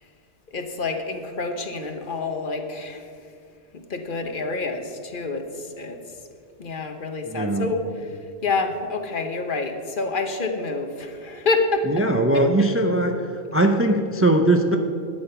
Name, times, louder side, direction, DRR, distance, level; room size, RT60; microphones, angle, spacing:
voice 1, 0.5-3.1 3.7-6.0 6.6-12.0 12.3-12.4, left 3 dB, 55° left, 5 dB, 1.1 m, -28 dB
voice 2, 7.3-7.7 11.9-14.8, right 1 dB, 20° right, 4 dB, 0.4 m, -20 dB
12.0 x 8.7 x 5.7 m, 2.3 s
omnidirectional pair, 1.1 m